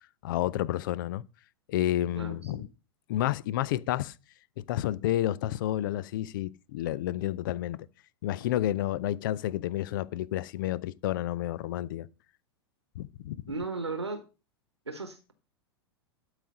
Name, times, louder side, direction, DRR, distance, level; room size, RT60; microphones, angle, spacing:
voice 1, 0.2-1.2 1.7-2.7 3.1-4.1 4.6-7.9 8.2-12.1 13.0-13.4, left 13 dB, 50° left, 0.5 m, -30 dB
voice 2, 2.1-2.6 13.5-14.2 14.9-15.3, right 3 dB, 85° right, 1.1 m, -36 dB
12.0 x 4.9 x 5.5 m
figure-of-eight pair, 90°, 14 cm